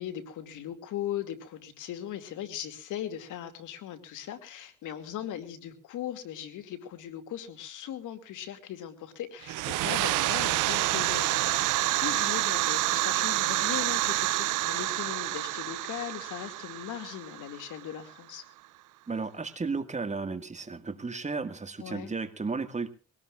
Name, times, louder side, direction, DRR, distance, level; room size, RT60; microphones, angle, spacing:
voice 1, 0.0-18.4 21.8-22.1, left 11 dB, 80° left, 8 dB, 2.5 m, -39 dB
sound 1, 9.4-18.0, right 17 dB, 85° right, 0.7 m, -28 dB
voice 2, 19.1-22.9, right 4 dB, 25° right, 9 dB, 1.9 m, -34 dB
22.5 x 18.5 x 2.5 m, 0.34 s
cardioid pair, 90°, 30 cm